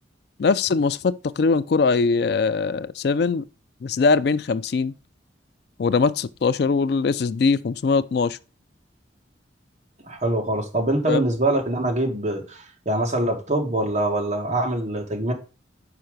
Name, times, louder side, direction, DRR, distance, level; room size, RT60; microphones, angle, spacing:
voice 1, 0.4-3.5 3.8-4.9 5.8-8.4 11.1-11.2, left 4 dB, 55° left, 0.4 m, -21 dB
voice 2, 10.1-15.3, right 1 dB, 40° right, 1.9 m, -24 dB
5.7 x 4.8 x 6.5 m
head